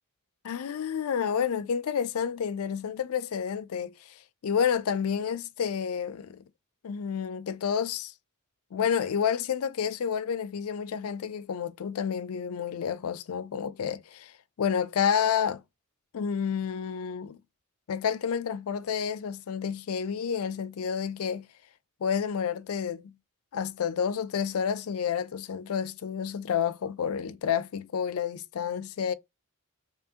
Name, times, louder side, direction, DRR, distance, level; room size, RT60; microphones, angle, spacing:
voice 1, 0.5-6.4 6.8-8.1 8.7-15.6 16.1-17.4 17.9-21.5 22.0-23.1 23.5-29.1, left 7 dB, 75° left, 0.4 m, -30 dB
4.6 x 2.8 x 2.8 m
head